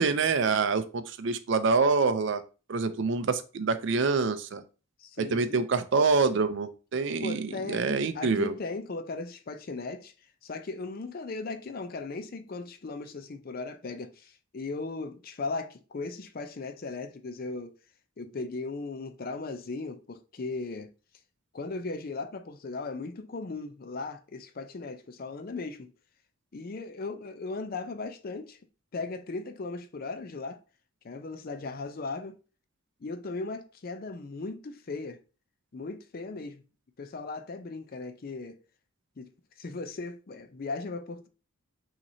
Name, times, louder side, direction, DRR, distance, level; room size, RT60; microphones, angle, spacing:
voice 1, 0.0-2.4 2.7-4.6 5.2-8.5, right 4 dB, 60° right, 0.5 m, -26 dB
voice 2, 5.0-5.6 7.2-10.1 10.4-17.7 18.2-20.9 21.5-25.9 26.5-28.6 28.9-30.6 31.0-32.4 33.0-35.2 35.7-36.6 37.0-38.6 39.2-39.3 39.6-41.3, left 3 dB, 45° left, 0.5 m, -37 dB
5.7 x 2.9 x 2.7 m
head